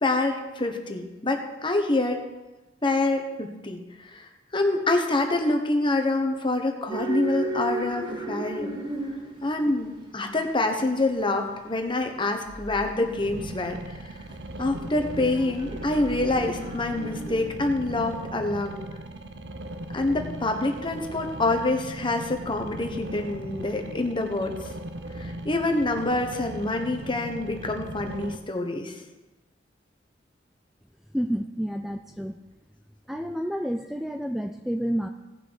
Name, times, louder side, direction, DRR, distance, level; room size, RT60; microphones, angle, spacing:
voice 1, 0.0-2.2 2.8-8.7 9.4-14.0 14.6-18.8 19.9-24.5 25.2-28.9, left 2 dB, 30° left, 4 dB, 1.2 m, -26 dB
sound 1, 6.9-17.5, right 2 dB, 30° right, 2.0 m, -36 dB
sound 2, 13.2-28.4, right 1 dB, 75° right, 0.8 m, -38 dB
voice 2, 31.1-32.4 33.1-35.1, equal, ahead, 5 dB, 0.3 m, -29 dB
17.5 x 6.0 x 4.9 m, 1.1 s
head